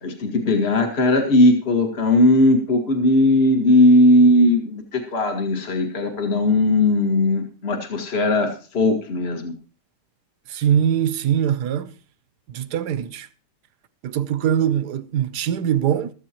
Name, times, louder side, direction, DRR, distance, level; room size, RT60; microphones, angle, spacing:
voice 1, 0.0-9.5, left 1 dB, 35° left, 2.1 m, -18 dB
voice 2, 10.5-11.9 12.5-13.3 14.0-16.1, right 9 dB, 75° right, 1.3 m, -22 dB
15.5 x 13.5 x 3.0 m
omnidirectional pair, 1.8 m